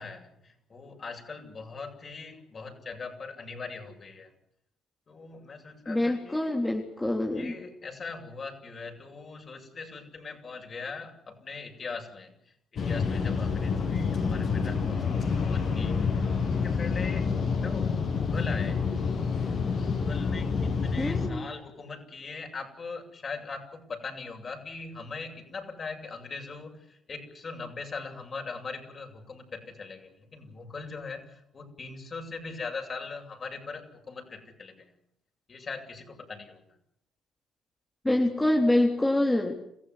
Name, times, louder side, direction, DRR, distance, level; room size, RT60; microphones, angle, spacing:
voice 1, 0.0-4.3 5.1-6.6 7.3-17.3 17.6-18.9 19.8-34.9 35.5-36.6, left 4 dB, 40° left, 3 dB, 7.9 m, -41 dB
voice 2, 5.9-7.5 21.0-21.5 38.0-39.6, left 1 dB, 10° left, 1 dB, 3.5 m, -25 dB
sound 1, 12.8-21.3, left 5 dB, 55° left, 7.5 m, -28 dB
28.0 x 15.5 x 9.9 m, 0.76 s
supercardioid pair, 75°, 0 cm